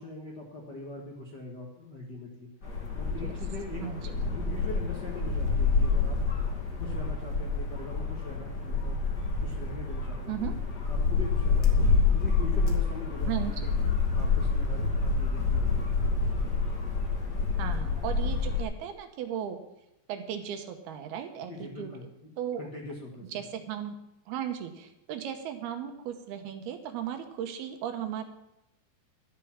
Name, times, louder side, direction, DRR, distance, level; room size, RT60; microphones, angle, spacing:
voice 1, 0.0-2.5 2.9-6.2 6.8-10.5 10.9-13.7 14.1-16.5 21.5-22.0 22.6-23.4, left 3 dB, 85° left, -1 dB, 0.9 m, -42 dB
sound 1, 2.6-18.6, left 4 dB, 30° left, 2.0 m, -28 dB
voice 2, 3.8-4.1 10.3-10.6 13.2-13.7 17.6-19.6 20.1-21.5 21.8-21.9 22.4-22.6 23.3-24.0 24.3-28.2, right 9 dB, 70° right, 6 dB, 2.7 m, -36 dB
12.5 x 8.3 x 7.4 m, 0.89 s
omnidirectional pair, 5.1 m